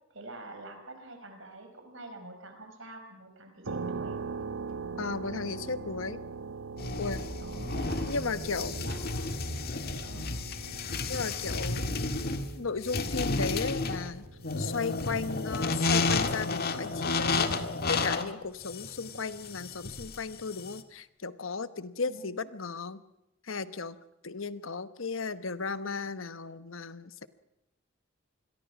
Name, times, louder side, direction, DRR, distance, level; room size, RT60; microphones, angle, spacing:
voice 1, 0.1-4.2 7.4-8.2 8.7-9.3 10.0-10.3 19.0-19.2 22.1-22.3, right 2 dB, 70° right, 6 dB, 5.5 m, -46 dB
sound 1, 3.6-18.3, right 4 dB, 90° right, 1.1 m, -43 dB
voice 2, 5.0-6.2 7.0-7.3 8.1-8.7 11.1-11.8 12.6-14.3 14.6-17.5 17.9-23.0 23.4-24.0 24.2-27.3, left 4 dB, 75° left, 13 dB, 1.1 m, -35 dB
sound 2, 6.8-20.8, left 3 dB, 50° left, 1.7 m, -32 dB
27.5 x 22.0 x 6.1 m, 0.91 s
head